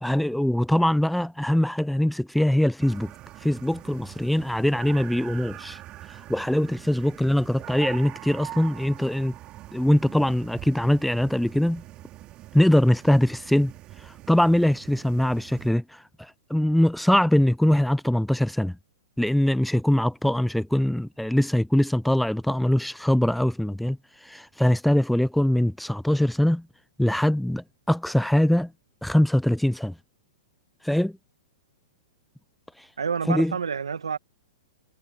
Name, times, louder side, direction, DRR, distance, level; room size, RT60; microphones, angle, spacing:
voice 1, 0.0-3.1 3.4-5.8 6.3-9.3 9.7-11.8 12.5-13.7 14.0-18.8 19.2-24.0 24.2-26.6 27.0-28.7 29.0-29.9 30.8-31.1 33.3-33.5, left 1 dB, ahead, 0.4 m, -22 dB
sound 1, 2.8-15.7, right 15 dB, 35° right, 3.2 m, -43 dB
voice 2, 33.0-34.2, right 6 dB, 85° right, 1.7 m, -28 dB
hypercardioid pair, 120°, 3 cm